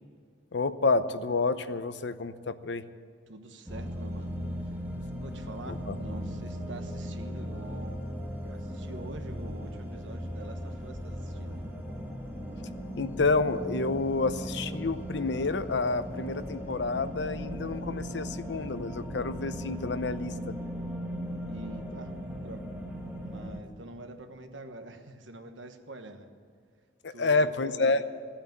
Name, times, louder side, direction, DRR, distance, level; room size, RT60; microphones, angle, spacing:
voice 1, 0.5-2.8 5.7-5.9 13.0-20.3 27.0-28.0, left 3 dB, 70° left, 12 dB, 0.7 m, -29 dB
voice 2, 3.3-4.4 5.2-8.0 8.4-11.6 21.5-22.1 22.4-22.7 23.2-26.3 27.1-28.1, right 2 dB, 85° right, 6 dB, 1.3 m, -45 dB
sound 1, 3.7-23.6, equal, 10° right, 1.7 m, -37 dB
15.5 x 8.8 x 9.1 m, 2.1 s
head